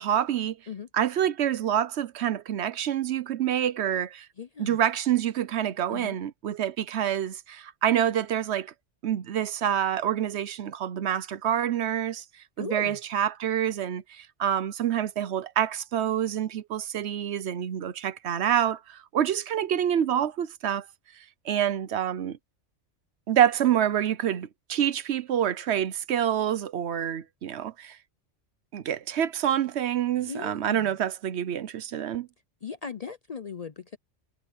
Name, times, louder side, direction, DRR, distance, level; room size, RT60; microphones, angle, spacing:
voice 1, 0.0-0.6 0.9-4.3 4.6-8.7 9.0-12.2 12.6-20.9 21.4-22.4 23.3-28.0 28.7-32.3, right 10 dB, 70° right, 0.9 m, -27 dB
voice 2, 4.4-4.8 5.9-6.2 12.6-13.0 30.2-30.9 32.6-34.0, left 6 dB, 45° left, 0.5 m, -38 dB
omnidirectional pair, 1.2 m